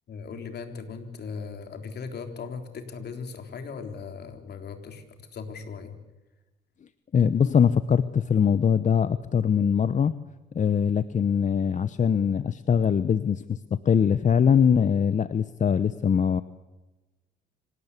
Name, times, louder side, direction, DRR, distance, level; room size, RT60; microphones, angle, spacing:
voice 1, 0.1-6.0, left 5 dB, 55° left, 6 dB, 3.6 m, -38 dB
voice 2, 7.1-10.1 10.5-13.6 13.8-16.4, left 7 dB, 40° left, 14 dB, 0.9 m, -22 dB
25.5 x 18.0 x 8.3 m, 1.1 s
cardioid pair, 90°, 20 cm